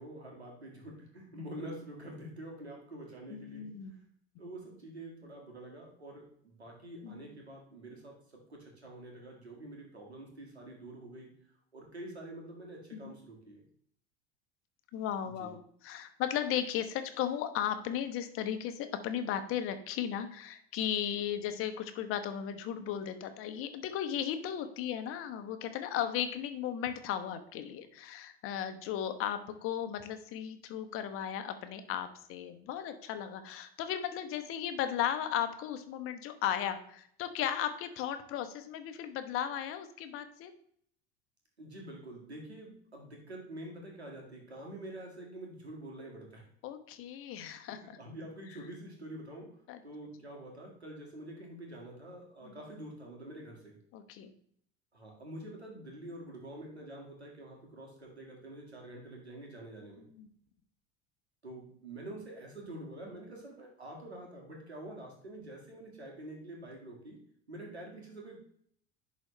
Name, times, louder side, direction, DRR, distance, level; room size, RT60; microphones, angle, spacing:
voice 1, 0.0-3.7 4.4-11.3 11.7-13.6 15.4-15.5 41.6-46.4 47.7-49.6 49.8-53.8 54.9-60.1 61.4-67.2 67.5-68.4, right 1 dB, 85° right, 0 dB, 2.0 m, -47 dB
voice 2, 3.3-3.9 7.0-7.2 12.9-13.1 14.9-40.5 46.6-48.0 49.7-49.8 52.4-52.5 53.9-54.3 60.1-60.3, left 10 dB, 45° left, 9 dB, 1.0 m, -36 dB
11.0 x 4.0 x 3.2 m, 0.65 s
figure-of-eight pair, 70°, 32 cm